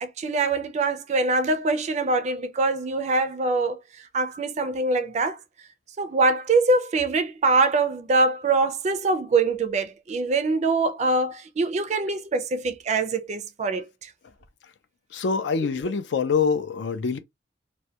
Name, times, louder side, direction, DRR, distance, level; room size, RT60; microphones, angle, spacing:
voice 1, 0.0-3.8 4.1-5.4 6.0-14.1 15.8-15.9, right 3 dB, 40° right, 0.4 m, -24 dB
voice 2, 15.1-17.2, left 5 dB, 75° left, 0.4 m, -25 dB
2.2 x 2.1 x 2.7 m
head